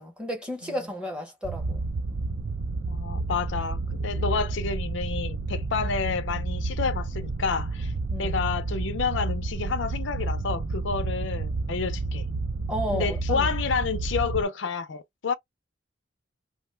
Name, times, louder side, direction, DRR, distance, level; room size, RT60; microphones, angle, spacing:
voice 1, 0.0-1.9 8.1-8.4 12.7-13.5, equal, 5° right, 0.7 m, -33 dB
sound 1, 1.4-14.4, right 3 dB, 45° right, 0.4 m, -30 dB
voice 2, 2.9-7.9 8.2-12.3 12.9-15.3, left 5 dB, 70° left, 0.5 m, -29 dB
2.6 x 2.1 x 3.1 m
head